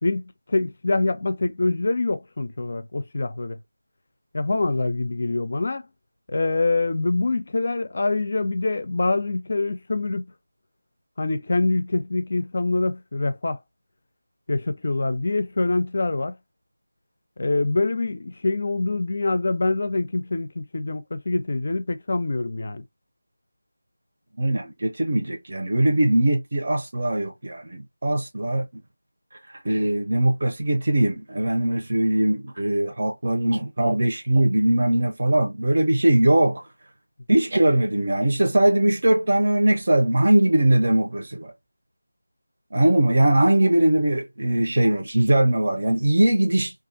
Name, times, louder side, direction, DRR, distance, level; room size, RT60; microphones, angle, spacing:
voice 1, 0.0-3.6 4.3-5.9 6.3-10.2 11.2-13.6 14.5-16.3 17.4-22.8, left 2 dB, 45° left, 0.4 m, -25 dB
voice 2, 24.4-28.6 29.6-36.6 37.3-41.5 42.7-46.7, right 1 dB, 50° right, 0.7 m, -21 dB
2.5 x 2.4 x 2.5 m
figure-of-eight pair, 165°, 0 cm